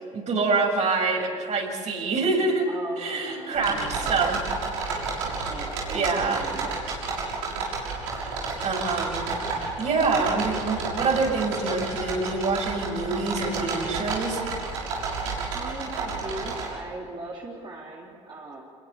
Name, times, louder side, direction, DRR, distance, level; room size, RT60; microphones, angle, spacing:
voice 1, 0.1-2.7 3.0-4.4 5.9-6.5 8.6-9.2 9.8-14.4, right 3 dB, 45° right, 2 dB, 7.3 m, -26 dB
voice 2, 2.7-4.3 5.5-6.8 15.5-18.6, right 2 dB, 30° right, -3 dB, 4.2 m, -39 dB
sound 1, 3.5-16.7, right 4 dB, 80° right, 6.6 m, -31 dB
27.5 x 22.0 x 7.2 m, 2.3 s
hypercardioid pair, 60°, 16 cm